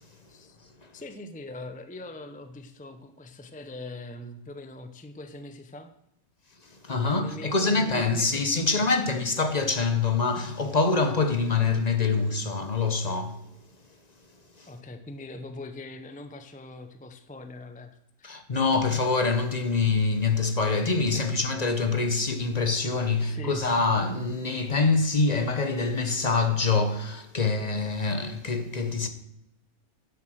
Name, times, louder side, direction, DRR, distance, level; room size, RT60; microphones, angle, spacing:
voice 1, 0.9-5.9 7.0-9.2 14.7-18.4 18.7-18.8 21.1-21.3 21.6-21.8 23.2-23.8, left 2 dB, 15° left, 0.3 m, -42 dB
voice 2, 6.6-13.4 14.6-14.7 18.2-29.1, left 4 dB, 35° left, 0.9 m, -25 dB
10.5 x 7.5 x 6.4 m
omnidirectional pair, 1.6 m